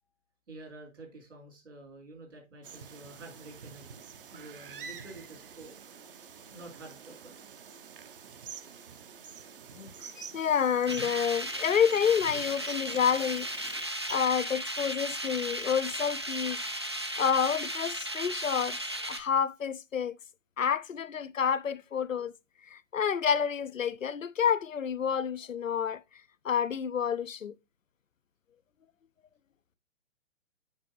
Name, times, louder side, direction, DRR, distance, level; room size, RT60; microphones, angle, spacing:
voice 1, 0.5-4.0 4.3-5.8 6.5-7.4, right 2 dB, 65° right, 4.3 m, -49 dB
sound 1, 2.6-13.8, right 6 dB, 45° right, 0.9 m, -47 dB
voice 2, 9.7-13.5 14.1-16.6 17.2-18.8 19.1-20.1 20.6-22.3 22.7-26.0 26.4-27.5, left 7 dB, 80° left, 0.6 m, -29 dB
sound 2, 10.9-19.2, right 1 dB, 25° right, 0.3 m, -35 dB
7.4 x 5.9 x 3.0 m
figure-of-eight pair, 130°, 39 cm